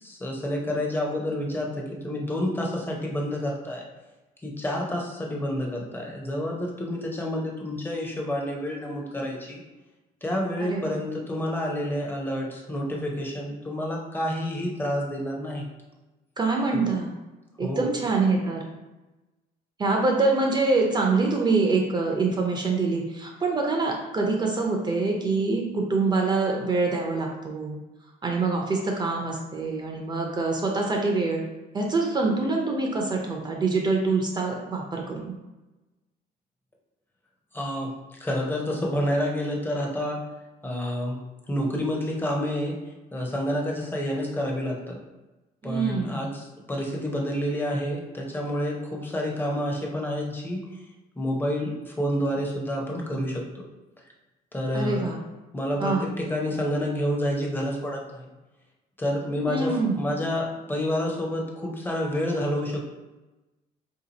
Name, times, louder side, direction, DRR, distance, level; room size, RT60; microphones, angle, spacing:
voice 1, 0.0-3.9 4.4-9.6 10.2-15.6 16.7-16.9 17.6-17.9 37.5-40.3 40.6-41.2 41.5-42.8 43.1-45.0 45.6-50.6 51.2-53.5 54.5-55.1 55.5-58.3 59.0-62.8, equal, 10° left, -1 dB, 0.7 m, -29 dB
voice 2, 10.6-10.9 16.4-17.1 17.6-18.7 19.8-27.8 28.2-31.4 31.7-35.4 45.6-46.2 54.7-55.2 55.8-56.1 59.5-60.0, right 3 dB, 25° right, 0 dB, 0.6 m, -25 dB
2.8 x 2.5 x 4.0 m, 1.1 s
cardioid pair, 110°, 17 cm